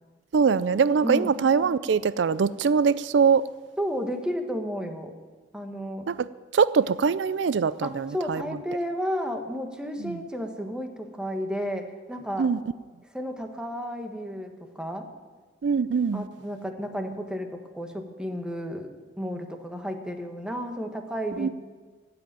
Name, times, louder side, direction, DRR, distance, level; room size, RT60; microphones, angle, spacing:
voice 1, 0.3-3.4 6.1-6.3 6.5-8.4 10.0-10.2 12.4-12.6 15.6-16.3 21.4-21.5, right 6 dB, 70° right, 0.4 m, -23 dB
voice 2, 1.0-1.3 3.8-5.1 5.5-6.1 7.8-12.5 13.1-15.1 16.1-18.9 19.2-21.5, equal, 5° right, 1.4 m, -32 dB
15.5 x 7.8 x 9.3 m
head